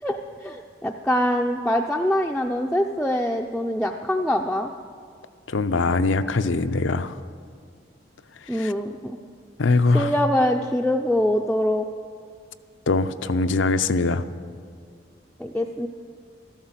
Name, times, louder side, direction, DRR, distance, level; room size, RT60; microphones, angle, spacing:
voice 1, 0.0-4.7 8.5-9.2 9.9-11.9 15.4-15.9, left 1 dB, 5° left, 0 dB, 0.4 m, -24 dB
voice 2, 5.5-7.1 8.5-8.7 9.6-10.1 12.9-14.2, left 3 dB, 85° left, 10 dB, 0.6 m, -22 dB
13.5 x 12.0 x 7.4 m, 2.1 s
head